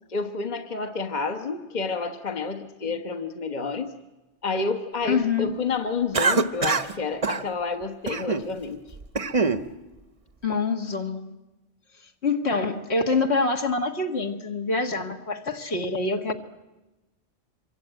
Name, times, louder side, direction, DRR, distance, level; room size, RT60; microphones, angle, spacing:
voice 1, 0.1-4.0 4.4-8.8, left 4 dB, 40° left, 1.4 m, -29 dB
voice 2, 5.0-5.5 10.4-11.2 12.2-16.3, left 3 dB, 60° left, 2.0 m, -25 dB
Cough, 6.1-6.9 7.2-7.4 8.1-8.5 8.9-9.6, right 4 dB, 30° right, 0.9 m, -24 dB
26.5 x 23.5 x 9.1 m
omnidirectional pair, 1.2 m